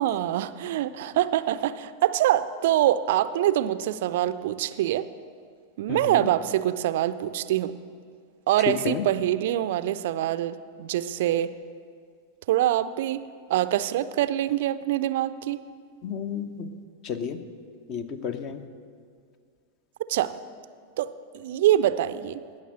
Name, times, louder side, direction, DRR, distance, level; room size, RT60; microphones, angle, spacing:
voice 1, 0.0-5.1 5.8-7.7 8.5-11.5 12.5-13.2 13.5-15.6 20.1-20.3 21.0-22.4, right 12 dB, 55° right, 13 dB, 0.4 m, -25 dB
voice 2, 5.9-6.3 8.7-9.1 16.0-16.7 17.0-17.4 17.9-18.6, left 7 dB, 40° left, 11 dB, 0.8 m, -31 dB
18.0 x 6.5 x 6.6 m, 2.2 s
figure-of-eight pair, 90°, 0 cm